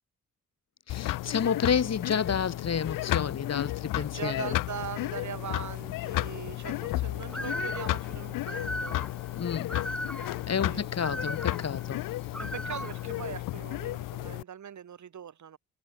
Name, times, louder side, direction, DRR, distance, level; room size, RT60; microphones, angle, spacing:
sound 1, 0.9-14.4, left 16 dB, 85° left, 1.1 m, -33 dB
voice 1, 0.9-4.5 9.4-9.8 10.5-12.0, left 7 dB, 50° left, 2.6 m, -30 dB
voice 2, 3.9-9.0 10.6-11.2 12.4-15.6, right 8 dB, 60° right, 3.4 m, -41 dB
Bird, 7.3-13.3, equal, 5° left, 3.9 m, -39 dB
supercardioid pair, 55°, 32 cm